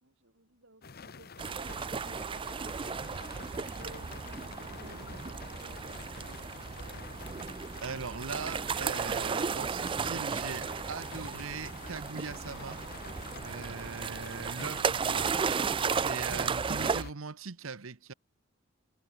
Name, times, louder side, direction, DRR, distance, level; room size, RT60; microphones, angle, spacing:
voice 1, 0.0-3.2 3.7-5.2 5.6-5.9 6.2-6.8, right 2 dB, 65° right, 4.3 m, -56 dB
sound 1, 0.8-17.1, left 4 dB, 50° left, 1.0 m, -47 dB
sound 2, 1.4-17.0, right 6 dB, 25° right, 0.4 m, -34 dB
voice 2, 7.8-12.8 13.4-15.4 15.9-18.1, right 5 dB, 90° right, 1.1 m, -40 dB
head